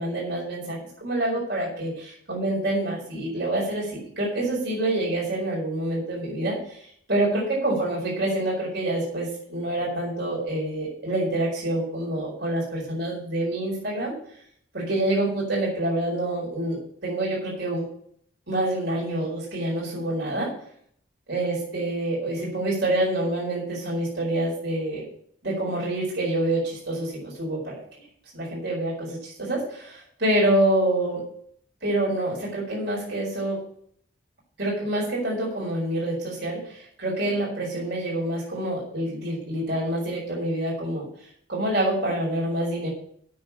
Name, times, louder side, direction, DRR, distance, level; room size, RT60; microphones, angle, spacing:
voice 1, 0.0-6.8 7.1-14.1 14.7-17.8 18.5-20.5 21.3-25.0 25.4-28.0 28.3-31.2 31.8-33.6 34.6-41.1 41.5-42.9, right 1 dB, 60° right, -4 dB, 4.6 m, -27 dB
8.6 x 6.5 x 8.3 m, 0.64 s
head